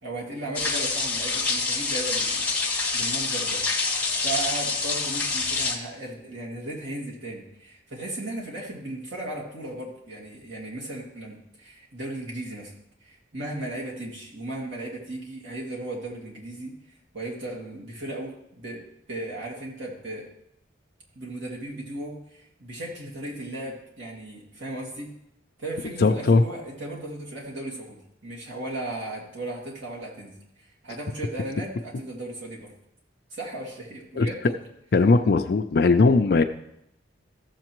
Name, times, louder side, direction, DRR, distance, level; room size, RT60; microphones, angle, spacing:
voice 1, 0.0-3.6 4.2-12.7 13.0-16.8 17.1-20.3 21.1-25.1 25.6-30.3 30.6-32.7 33.3-34.6, right 2 dB, 85° right, -3 dB, 2.3 m, -36 dB
sound 1, 0.5-5.8, left 3 dB, 10° left, 1.0 m, -26 dB
voice 2, 26.0-26.4 34.2-34.3 34.9-36.4, left 3 dB, 55° left, 6 dB, 0.4 m, -19 dB
14.5 x 7.3 x 3.0 m, 0.80 s
head